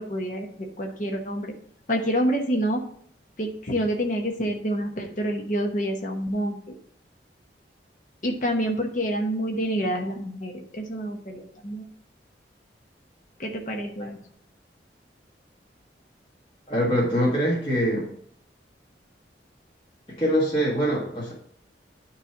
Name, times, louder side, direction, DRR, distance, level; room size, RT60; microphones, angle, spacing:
voice 1, 0.0-1.5 1.9-2.8 3.4-6.6 8.2-11.8 13.4-14.2, equal, 45° left, 1 dB, 1.0 m, -27 dB
voice 2, 16.7-18.1 20.2-21.3, equal, 30° left, -7 dB, 1.9 m, -23 dB
9.8 x 3.3 x 5.9 m, 0.64 s
head